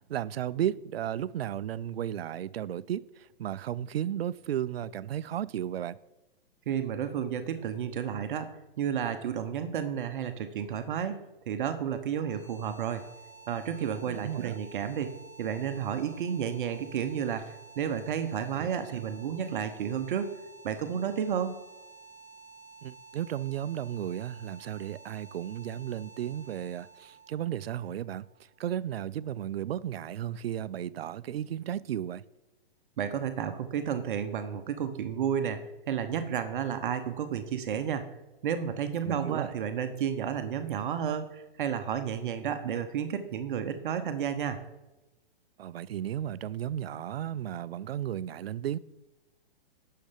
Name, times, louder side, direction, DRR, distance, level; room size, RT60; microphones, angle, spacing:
voice 1, 0.1-6.0 14.1-14.6 18.6-19.0 22.8-32.2 39.0-39.5 45.6-48.8, right 11 dB, 80° right, 0.5 m, -34 dB
voice 2, 6.7-8.5 8.8-11.2 11.5-13.1 13.5-20.4 20.6-21.5 33.0-38.1 38.4-44.6, right 8 dB, 60° right, 1.0 m, -32 dB
sound 1, 12.1-29.1, right 4 dB, 10° right, 1.8 m, -52 dB
10.5 x 6.6 x 5.7 m
hypercardioid pair, 145°, 30 cm